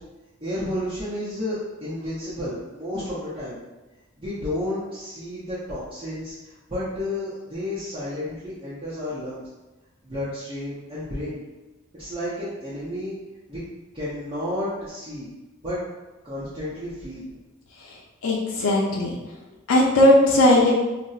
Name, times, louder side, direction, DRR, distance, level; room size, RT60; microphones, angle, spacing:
voice 1, 0.4-3.6 4.2-9.4 10.0-11.4 11.9-13.2 13.5-13.6 13.9-15.3 15.6-15.8 16.2-17.4, left 1 dB, 25° right, -11 dB, 0.6 m, -31 dB
voice 2, 18.2-19.1 19.7-20.7, left 1 dB, 90° left, -3 dB, 0.4 m, -17 dB
4.0 x 2.0 x 2.3 m, 1.1 s
head